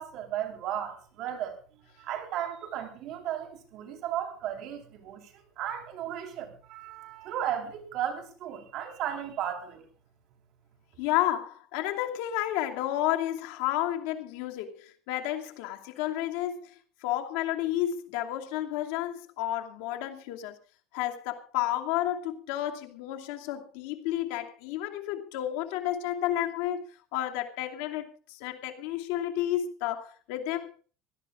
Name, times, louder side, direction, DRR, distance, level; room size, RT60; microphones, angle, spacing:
voice 1, 0.0-1.6 2.0-9.8, right 10 dB, 50° right, 4.3 m, -35 dB
voice 2, 11.0-20.6 20.9-30.8, left 13 dB, 85° left, 2.6 m, -31 dB
24.0 x 17.5 x 2.5 m
cardioid pair, 165°, 0 cm